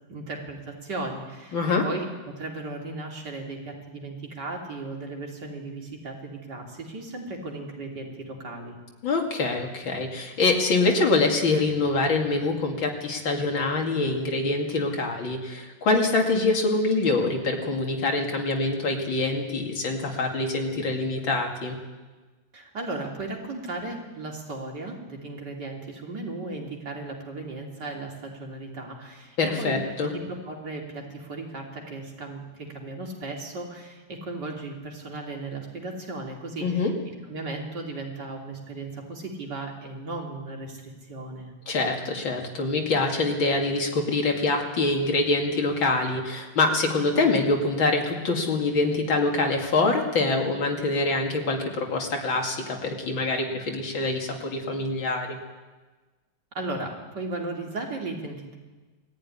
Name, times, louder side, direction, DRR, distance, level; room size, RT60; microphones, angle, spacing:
voice 1, 0.1-1.6 1.8-8.8 22.5-29.8 30.0-36.9 37.3-41.5 56.5-58.5, right 2 dB, 60° right, 0 dB, 3.7 m, -36 dB
voice 2, 1.5-1.8 9.0-21.8 29.4-30.1 36.6-36.9 41.7-55.4, left 3 dB, 80° left, 2 dB, 3.1 m, -25 dB
20.0 x 14.0 x 10.0 m, 1.3 s
omnidirectional pair, 2.1 m